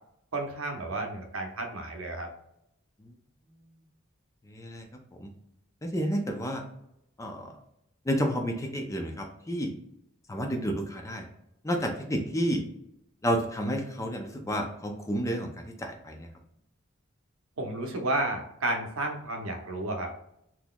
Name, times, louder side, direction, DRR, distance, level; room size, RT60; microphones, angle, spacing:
voice 1, 0.3-2.3 17.6-20.1, right 2 dB, 80° right, 4 dB, 0.7 m, -32 dB
voice 2, 4.5-4.9 5.2-5.3 5.8-6.6 7.2-7.5 8.1-9.7 10.3-11.3 11.6-12.6 13.2-15.5 15.8-16.3, equal, 15° left, 3 dB, 0.5 m, -30 dB
3.8 x 2.9 x 2.2 m, 0.77 s
head